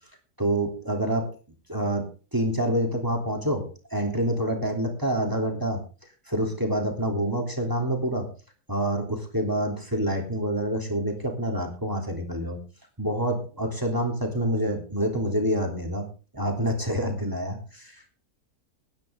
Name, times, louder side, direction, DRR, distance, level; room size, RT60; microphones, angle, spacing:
voice 1, 0.4-1.3 1.7-5.8 6.3-8.3 8.7-12.6 13.0-16.1 16.3-18.0, right 1 dB, 10° right, 2 dB, 3.2 m, -27 dB
18.5 x 10.5 x 3.7 m, 0.35 s
omnidirectional pair, 1.7 m